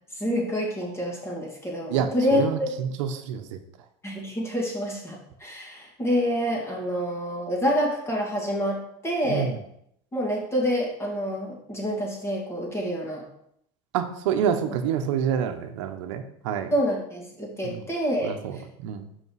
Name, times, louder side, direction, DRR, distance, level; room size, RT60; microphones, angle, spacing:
voice 1, 0.1-2.7 4.0-9.5 10.1-13.2 16.7-18.6, equal, 15° left, -1 dB, 2.4 m, -27 dB
voice 2, 1.9-3.6 9.3-9.6 13.9-16.7 17.6-17.9 18.2-19.1, right 8 dB, 80° right, 7 dB, 0.8 m, -28 dB
5.8 x 5.4 x 4.7 m, 0.72 s
supercardioid pair, 105°, 16 cm